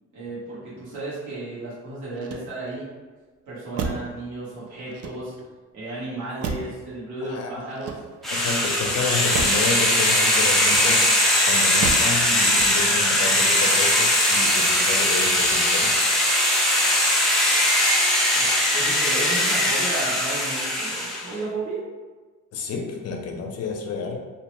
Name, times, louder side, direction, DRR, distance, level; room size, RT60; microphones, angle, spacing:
voice 1, 0.1-2.9 3.5-5.3 5.7-8.0 17.7-17.8 18.3-21.8, right 2 dB, 70° right, -9 dB, 1.3 m, -33 dB
Motor vehicle (road), 2.1-2.9 3.7-4.2 4.9-5.6 6.4-6.9 7.7-8.4 9.3-9.7 10.6-11.2 11.8-12.2 12.5-13.0, right 5 dB, 55° right, 0.4 m, -32 dB
voice 2, 7.2-7.5 8.3-11.1 11.5-16.0 22.5-24.2, left 4 dB, 55° left, 2 dB, 0.6 m, -30 dB
sound 1, 8.2-21.3, left 1 dB, ahead, 0.5 m, -20 dB
2.7 x 2.1 x 3.0 m, 1.3 s
cardioid pair, 90°, 30 cm